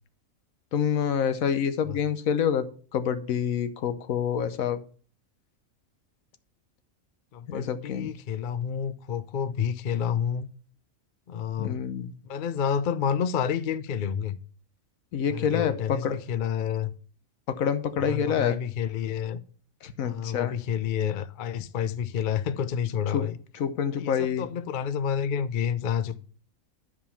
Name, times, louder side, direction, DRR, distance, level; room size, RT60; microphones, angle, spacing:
voice 1, 0.7-2.7 2.9-4.8 7.5-8.1 11.6-12.1 15.1-16.2 17.5-18.6 19.8-20.5 23.1-23.3 23.5-24.4, left 8 dB, 75° left, 1.2 m, -27 dB
voice 2, 7.3-10.5 11.3-11.8 12.2-14.4 15.3-16.9 18.1-19.4 20.0-23.4 24.0-26.2, left 8 dB, 60° left, 0.5 m, -29 dB
10.5 x 4.9 x 5.6 m
omnidirectional pair, 1.4 m